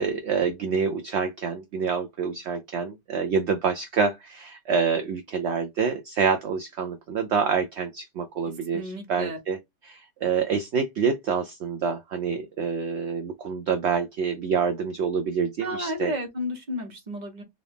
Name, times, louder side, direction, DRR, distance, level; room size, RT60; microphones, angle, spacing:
voice 1, 0.0-16.1, right 6 dB, 65° right, 0.7 m, -27 dB
voice 2, 8.7-9.4 15.6-17.4, equal, 35° right, 0.9 m, -32 dB
3.8 x 2.5 x 3.4 m
omnidirectional pair, 1.7 m